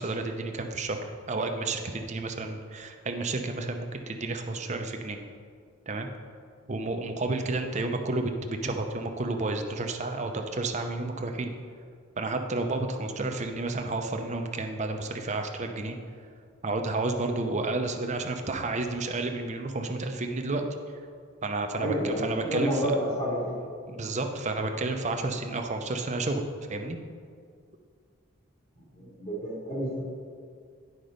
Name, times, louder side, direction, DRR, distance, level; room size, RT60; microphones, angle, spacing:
voice 1, 0.0-5.2 5.9-6.1 6.7-11.5 12.2-16.0 16.6-20.6 21.4-22.9 23.9-26.4 26.7-27.0, right 2 dB, 35° right, 5 dB, 0.7 m, -31 dB
voice 2, 21.8-23.6 29.0-30.0, equal, 45° left, -6 dB, 2.1 m, -29 dB
9.5 x 5.4 x 5.1 m, 2.1 s
head